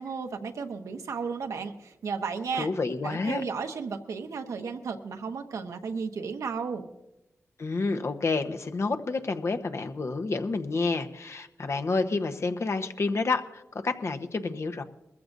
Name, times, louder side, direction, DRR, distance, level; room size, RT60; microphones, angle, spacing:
voice 1, 0.0-2.7 3.0-6.9, right 5 dB, 80° right, 5 dB, 1.0 m, -34 dB
voice 2, 2.5-3.4 7.6-14.8, left 3 dB, 60° left, 6 dB, 1.0 m, -29 dB
21.0 x 14.5 x 2.6 m, 0.93 s
cardioid pair, 40°, 5 cm